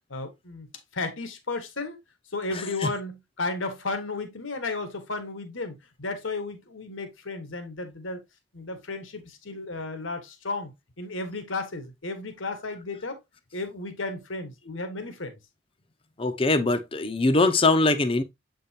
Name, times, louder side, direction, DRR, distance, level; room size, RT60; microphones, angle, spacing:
voice 1, 0.1-0.7 0.9-2.0 2.3-8.2 8.5-10.7 11.0-13.2 13.5-15.4, left 3 dB, 80° left, 1.5 m, -33 dB
voice 2, 2.5-2.9 16.2-18.2, left 2 dB, 30° left, 0.7 m, -22 dB
7.6 x 5.2 x 2.8 m
head